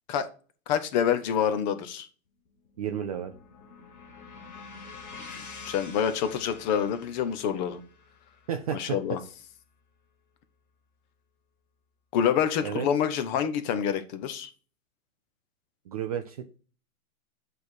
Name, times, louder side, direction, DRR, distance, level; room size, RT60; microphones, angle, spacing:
voice 1, 0.7-2.1 5.2-7.8 8.7-9.2 12.1-14.5, left 8 dB, 35° left, 10 dB, 0.7 m, -27 dB
sound 1, 2.5-10.7, left 4 dB, 90° left, 1.7 m, -48 dB
voice 2, 2.8-3.3 8.5-9.0 12.6-12.9 15.9-16.6, right 9 dB, 30° right, 6 dB, 0.4 m, -32 dB
8.0 x 3.3 x 4.4 m, 0.39 s
hypercardioid pair, 130°, 43 cm